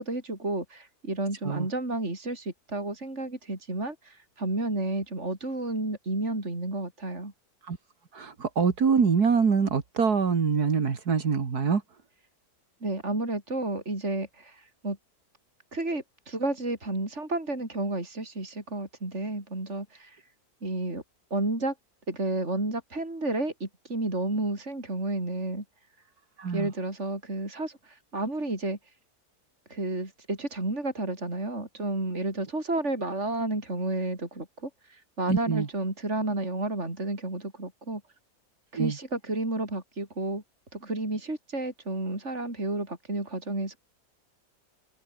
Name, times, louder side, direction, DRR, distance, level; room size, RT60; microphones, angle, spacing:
voice 1, 0.0-7.3 12.8-15.0 15.7-20.2 20.6-21.0 21.3-21.7 22.1-25.6 26.5-28.8 29.7-38.0 38.7-40.4 40.7-43.8, right 2 dB, 45° right, 5.7 m, -31 dB
voice 2, 8.1-11.8 26.4-26.7 35.3-35.7 38.8-39.0, right 5 dB, 70° right, 2.6 m, -24 dB
omnidirectional pair, 1.7 m